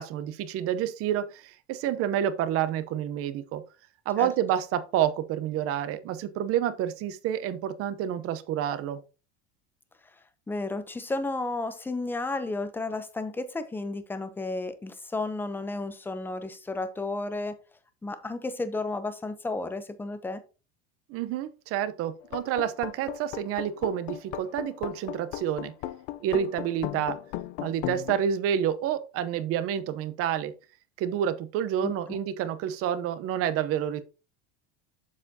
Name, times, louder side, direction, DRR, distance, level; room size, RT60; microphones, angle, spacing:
voice 1, 0.0-3.6 4.1-9.0 21.1-25.7 26.2-27.2 27.6-30.5 31.0-34.0, right 10 dB, 45° right, 0.8 m, -29 dB
voice 2, 10.5-17.6 18.0-20.4 31.8-32.2, left 2 dB, 5° left, 0.6 m, -32 dB
sound 1, 22.2-28.2, left 14 dB, 65° left, 0.6 m, -36 dB
7.3 x 6.6 x 2.7 m
cardioid pair, 145°, 31 cm